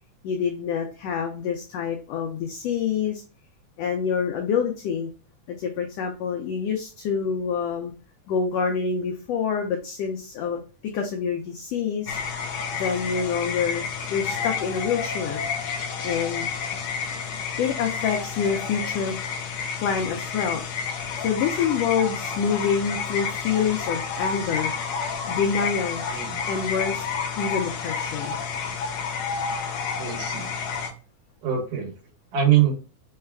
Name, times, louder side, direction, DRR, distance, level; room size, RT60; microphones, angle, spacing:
voice 1, 0.2-3.2 3.8-5.1 5.5-7.9 8.3-10.6 10.9-12.2 12.7-13.8 14.1-15.5 16.0-16.5 17.6-19.2 19.8-20.6 21.2-24.7 25.3-26.0 26.5-27.0 27.4-28.4, left 6 dB, 90° left, 3 dB, 1.4 m, -26 dB
sound 1, 12.1-30.9, left 6 dB, 75° left, 1.9 m, -30 dB
voice 2, 26.1-26.5 30.0-30.5 31.4-31.9 32.3-32.7, right 10 dB, 90° right, -2 dB, 2.9 m, -23 dB
5.6 x 2.3 x 3.3 m, 0.35 s
omnidirectional pair, 3.5 m